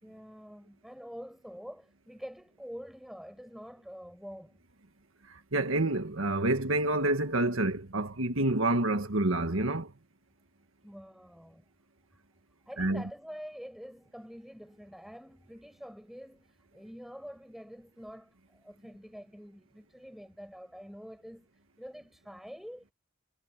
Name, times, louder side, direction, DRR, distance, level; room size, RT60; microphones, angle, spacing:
voice 1, 0.0-4.6 10.8-11.7 12.7-21.5 21.8-22.9, equal, ahead, 6.0 m, -46 dB
voice 2, 5.5-9.9 12.8-13.0, right 2 dB, 85° right, 1.7 m, -28 dB
head